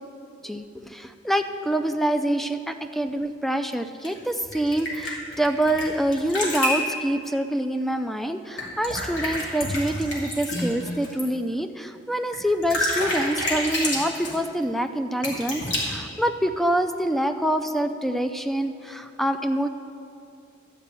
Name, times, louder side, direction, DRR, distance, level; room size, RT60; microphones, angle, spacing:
voice 1, 0.9-19.7, right 1 dB, ahead, 8 dB, 0.4 m, -26 dB
sound 1, 4.0-5.8 6.1-6.9 8.6-11.2 12.3-12.4 12.6-14.4 15.2-15.8, left 1 dB, 85° left, 2.7 m, -28 dB
12.5 x 5.3 x 8.3 m, 2.5 s
head